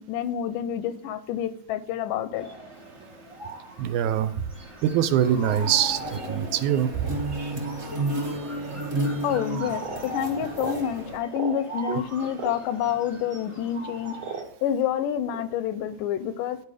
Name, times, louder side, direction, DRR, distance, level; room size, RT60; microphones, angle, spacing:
voice 1, 0.0-2.5 9.2-14.2 14.6-16.6, left 9 dB, 90° left, 13 dB, 2.3 m, -28 dB
sound 1, 2.3-14.4, right 2 dB, 45° right, 0.3 m, -41 dB
voice 2, 3.8-4.3 4.8-6.9 11.9-12.0, right 9 dB, 80° right, 11 dB, 1.9 m, -23 dB
sound 2, 5.2-11.2, right 1 dB, 25° right, 1.8 m, -32 dB
sound 3, 9.8-10.0 10.5-10.8 11.3-11.6 12.3-12.6 13.4-13.5 14.2-14.7 15.3-15.5, right 5 dB, 65° right, 1.4 m, -34 dB
11.0 x 4.7 x 4.9 m, 0.72 s
omnidirectional pair, 3.7 m